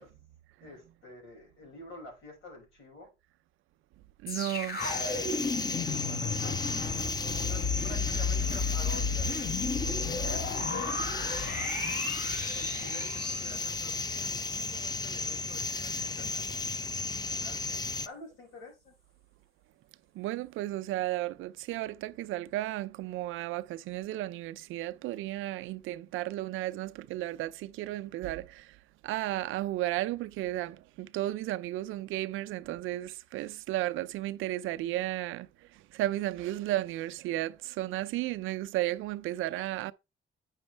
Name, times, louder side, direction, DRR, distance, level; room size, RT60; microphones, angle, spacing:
voice 1, 0.6-3.1 6.0-6.5 6.9-9.5 10.0-11.7 12.5-16.5 17.2-18.9, left 2 dB, 80° left, 5.9 m, -48 dB
voice 2, 4.2-4.8 20.1-28.8 29.0-39.9, right 15 dB, 90° right, 0.5 m, -34 dB
sound 1, 4.3-15.4 15.8-15.9, left 4 dB, 50° left, 3.6 m, -34 dB
sound 2, 4.8-18.1, left 3 dB, 20° left, 0.5 m, -34 dB
8.9 x 6.2 x 3.3 m
cardioid pair, 90°, 20 cm